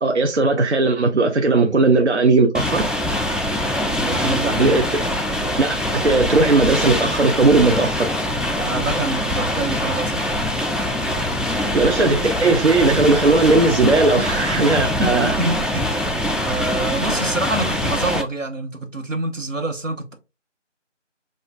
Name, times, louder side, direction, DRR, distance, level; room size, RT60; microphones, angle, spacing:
voice 1, 0.0-2.9 4.6-4.8 5.6-8.1 11.7-15.3, right 3 dB, 65° right, 0.6 m, -17 dB
sound 1, 2.5-18.2, left 1 dB, ahead, 0.4 m, -23 dB
voice 2, 3.9-4.9 8.6-10.4 14.7-16.0 16.4-20.1, right 2 dB, 85° right, 1.1 m, -26 dB
6.5 x 2.4 x 2.3 m
figure-of-eight pair, 180°, 37 cm